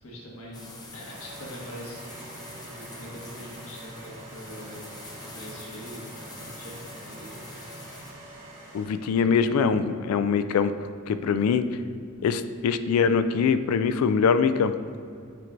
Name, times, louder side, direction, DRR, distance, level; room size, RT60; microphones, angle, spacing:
voice 1, 0.0-2.3 2.6-4.9 5.2-8.2 9.2-9.3, equal, 70° left, -5 dB, 1.5 m, -43 dB
sound 1, 0.5-8.1, left 2 dB, 20° left, 0.6 m, -45 dB
sound 2, 1.1-9.2, right 1 dB, 35° right, 1.0 m, -46 dB
voice 2, 8.7-10.7 11.1-11.6 12.2-14.7, left 6 dB, 90° left, 12 dB, 0.3 m, -23 dB
9.0 x 4.5 x 2.5 m, 2.4 s
head